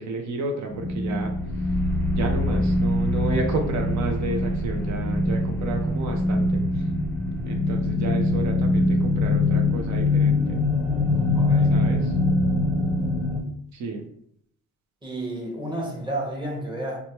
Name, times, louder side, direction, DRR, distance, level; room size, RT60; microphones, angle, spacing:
voice 1, 0.0-1.3 2.1-6.9 7.5-10.6 11.7-12.1 13.7-14.0, right 2 dB, 65° right, 3 dB, 0.6 m, -31 dB
sound 1, 0.7-13.4, left 2 dB, 5° left, 0.5 m, -23 dB
voice 2, 11.3-11.8 15.0-17.0, right 1 dB, 15° right, -1 dB, 0.9 m, -31 dB
3.1 x 2.1 x 2.8 m, 0.68 s
cardioid pair, 90°, 30 cm